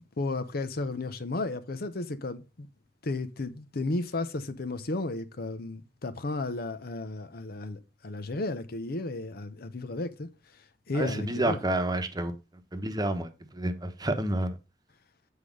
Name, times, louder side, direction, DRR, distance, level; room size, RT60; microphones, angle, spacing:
voice 1, 0.2-2.7 3.0-10.3 10.9-11.6, left 2 dB, 60° left, 0.8 m, -33 dB
voice 2, 10.9-12.3 12.7-14.5, right 1 dB, 25° right, 1.0 m, -29 dB
8.2 x 5.0 x 5.3 m
head